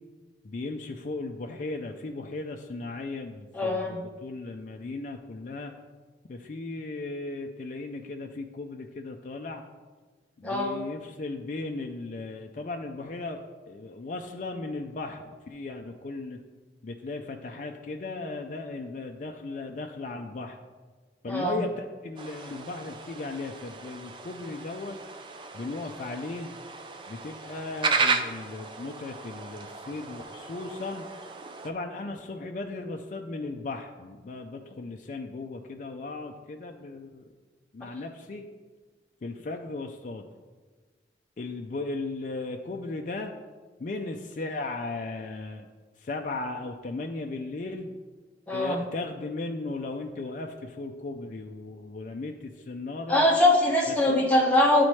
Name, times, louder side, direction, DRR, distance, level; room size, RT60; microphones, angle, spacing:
voice 1, 0.4-5.7 6.3-9.6 10.4-16.4 16.8-20.6 21.2-25.0 25.5-26.5 27.1-31.1 31.6-37.2 37.7-38.4 39.2-40.3 41.4-43.3 43.8-45.7 46.0-47.9 48.5-53.2 53.9-54.2, left 3 dB, 45° left, 3 dB, 0.4 m, -36 dB
voice 2, 3.5-4.0 10.4-10.7 21.3-21.6 48.5-48.8 53.1-54.8, left 1 dB, 10° left, -3 dB, 1.0 m, -22 dB
sound 1, 22.2-31.7, right 4 dB, 30° right, 0.4 m, -34 dB
11.0 x 4.2 x 3.1 m, 1.4 s
head